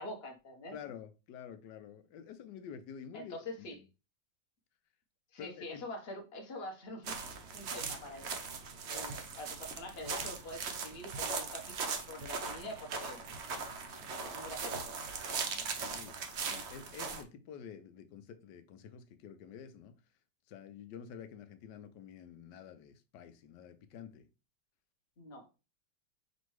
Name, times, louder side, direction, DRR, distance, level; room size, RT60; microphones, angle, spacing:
voice 1, 0.0-0.8 3.1-3.7 5.3-8.3 8.9-13.2 14.2-14.9 25.2-25.5, left 1 dB, 45° left, 1.0 m, -45 dB
voice 2, 0.7-3.8 5.4-5.8 15.4-20.0 20.5-24.3, left 8 dB, 80° left, 1.2 m, -49 dB
sound 1, 7.0-17.2, right 5 dB, 75° right, 0.6 m, -39 dB
5.2 x 2.6 x 3.1 m
omnidirectional pair, 1.9 m